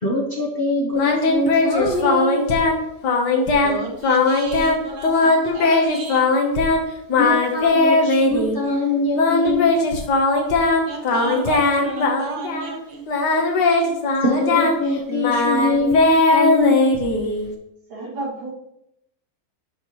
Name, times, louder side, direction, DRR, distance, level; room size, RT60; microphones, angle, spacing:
voice 1, 0.0-2.5 7.2-9.7 14.2-16.8, left 2 dB, 35° left, -2 dB, 1.0 m, -23 dB
Singing, 0.9-2.8 3.0-3.8 4.0-4.8 5.0-6.8 7.1-8.6 9.2-12.8 13.1-17.5, left 3 dB, 60° left, 1.6 m, -19 dB
voice 2, 3.6-6.3 10.8-13.0, right 3 dB, 40° right, 1 dB, 1.3 m, -33 dB
voice 3, 17.9-18.5, right 2 dB, 85° right, -3 dB, 2.8 m, -30 dB
11.5 x 4.6 x 3.0 m, 0.79 s
omnidirectional pair, 2.2 m